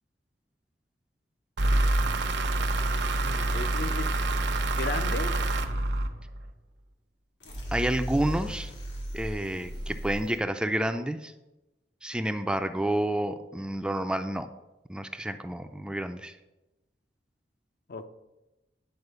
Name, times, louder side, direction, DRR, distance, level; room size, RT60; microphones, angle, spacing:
sound 1, 1.6-6.5, right 2 dB, 85° right, 0.9 m, -27 dB
voice 1, 3.2-4.3 4.7-5.4 17.9-18.1, left 2 dB, 60° left, 9 dB, 0.7 m, -36 dB
sound 2, 7.4-10.4, equal, 90° left, 2.3 m, -36 dB
voice 2, 7.7-8.7 9.1-11.3 12.0-14.5 14.9-16.3, right 1 dB, 5° right, 8 dB, 0.4 m, -29 dB
9.7 x 4.8 x 6.7 m, 1.0 s
head